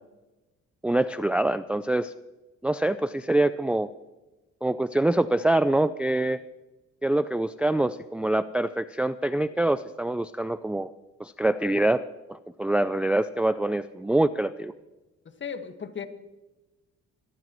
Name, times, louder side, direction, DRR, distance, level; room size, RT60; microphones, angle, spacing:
voice 1, 0.8-2.1 2.6-3.9 4.6-6.4 7.0-10.9 11.2-12.0 12.3-14.7, right 1 dB, 5° right, 13 dB, 0.4 m, -25 dB
voice 2, 15.4-16.1, left 7 dB, 40° left, 7 dB, 1.7 m, -35 dB
24.5 x 13.0 x 3.1 m, 1.1 s
cardioid pair, 90°, 30 cm